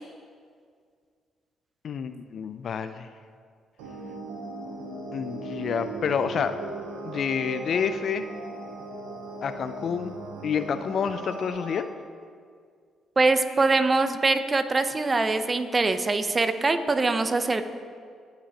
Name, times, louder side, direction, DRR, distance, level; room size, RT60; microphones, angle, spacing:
voice 1, 1.8-3.1 5.1-6.6 7.0-8.2 9.4-10.1 10.4-11.9, left 7 dB, 60° left, 11 dB, 0.4 m, -28 dB
sound 1, 3.8-11.8, right 2 dB, 85° right, 0.9 m, -38 dB
sound 2, 4.0-11.5, right 4 dB, 75° left, 1.5 m, -47 dB
voice 2, 13.2-17.6, right 3 dB, 35° right, 9 dB, 0.7 m, -23 dB
16.0 x 5.7 x 2.9 m, 2.1 s
supercardioid pair, 55°, 0 cm